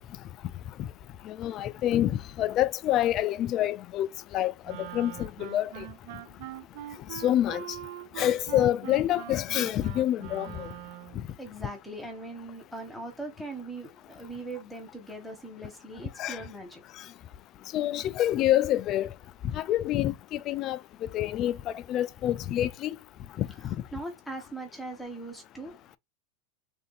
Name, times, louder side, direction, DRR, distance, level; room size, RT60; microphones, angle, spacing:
voice 1, 1.3-4.1 4.3-5.8 7.2-7.6 8.2-10.7 16.2-16.4 17.7-19.1 19.5-23.0 23.4-23.8, left 12 dB, 40° left, 0.4 m, -27 dB
Wind instrument woodwind instrument, 4.6-11.3, right 15 dB, 65° right, 0.4 m, -42 dB
voice 2, 11.4-16.8 23.9-26.0, right 2 dB, 5° left, 1.3 m, -40 dB
3.3 x 2.7 x 4.0 m
supercardioid pair, 130°, 0 cm